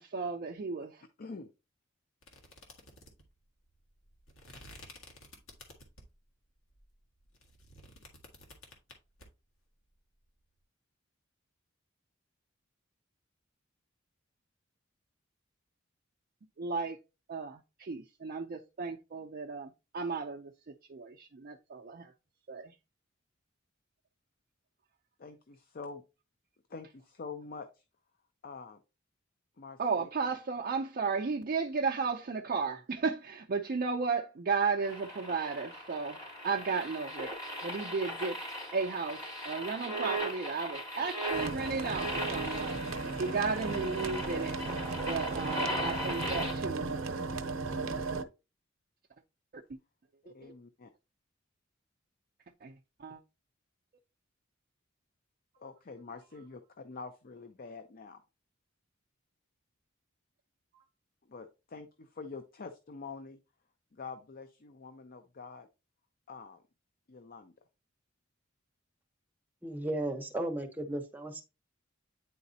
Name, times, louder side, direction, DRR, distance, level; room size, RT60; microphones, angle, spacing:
voice 1, 0.0-1.0 16.6-17.0 17.3-22.1 22.5-22.7 29.8-36.2 36.4-37.3 37.6-38.4 38.7-47.0 49.5-49.8 50.3-50.5 52.6-53.2 60.7-60.8, right 4 dB, 45° right, 0.5 m, -34 dB
voice 2, 1.2-1.5 25.2-26.0 26.7-27.8 28.4-28.8 29.6-30.1 50.2-50.9 55.6-58.2 61.3-63.4 63.9-65.7 66.3-66.6 67.1-67.5, left 4 dB, 45° left, 0.6 m, -46 dB
sound 1, 2.2-6.2 6.7-9.3, left 2 dB, 80° left, 1.7 m, -53 dB
sound 2, 34.8-46.5, right 1 dB, 20° left, 2.9 m, -38 dB
sound 3, 41.3-48.2, right 3 dB, 75° right, 0.7 m, -36 dB
voice 3, 69.6-71.4, right 1 dB, 10° right, 0.9 m, -35 dB
9.4 x 4.0 x 2.7 m
head